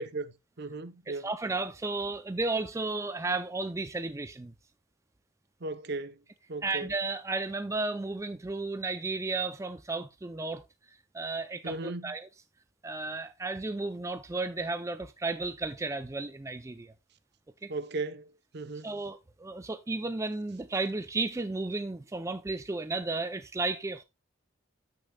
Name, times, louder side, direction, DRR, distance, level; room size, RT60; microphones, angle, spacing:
voice 1, 0.0-1.3 5.6-6.2 6.5-6.9 11.6-12.1 17.7-18.3 18.5-18.9, right 2 dB, 50° right, 0.7 m, -36 dB
voice 2, 1.1-4.5 6.6-12.3 12.8-16.9 17.6-17.7 18.8-24.0, right 3 dB, 15° right, 0.4 m, -33 dB
13.5 x 6.6 x 2.2 m
head